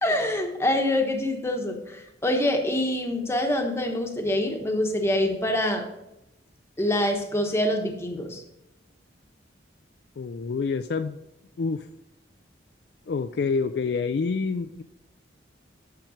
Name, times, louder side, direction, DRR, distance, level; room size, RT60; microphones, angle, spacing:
voice 1, 0.0-5.8 6.8-8.4, left 1 dB, 15° left, 3 dB, 1.1 m, -25 dB
voice 2, 10.2-11.3 11.6-11.9 13.1-14.8, left 4 dB, 60° left, 9 dB, 0.4 m, -27 dB
9.1 x 5.9 x 5.0 m, 0.91 s
head